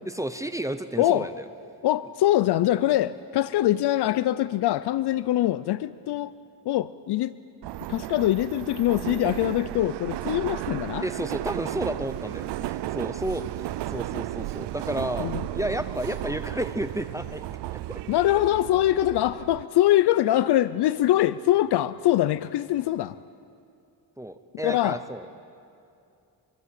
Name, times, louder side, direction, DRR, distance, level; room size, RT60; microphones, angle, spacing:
voice 1, 0.1-1.4 11.0-17.4 17.7-18.0 18.3-18.4 24.2-25.3, right 1 dB, 10° right, 0.8 m, -32 dB
voice 2, 1.0-1.3 1.8-6.3 6.7-7.3 7.9-11.0 15.2-15.4 18.1-23.2 24.6-25.0, left 14 dB, 75° left, 0.6 m, -23 dB
Subway metro underground, 7.6-19.6, right 15 dB, 90° right, 0.6 m, -34 dB
24.5 x 23.5 x 8.3 m
cardioid pair, 140°, 40 cm